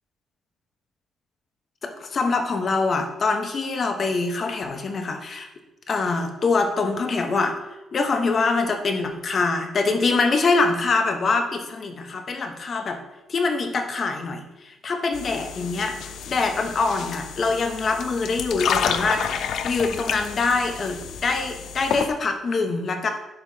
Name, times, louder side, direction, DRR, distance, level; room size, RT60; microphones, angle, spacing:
voice 1, 1.8-5.5 5.9-7.6 7.9-13.0 13.3-16.0 16.3-23.1, left 3 dB, 45° left, 5 dB, 1.0 m, -24 dB
sound 1, 15.1-22.1, left 7 dB, 70° left, 0.4 m, -30 dB
10.5 x 4.6 x 2.8 m, 0.96 s
cardioid pair, 90°, 0 cm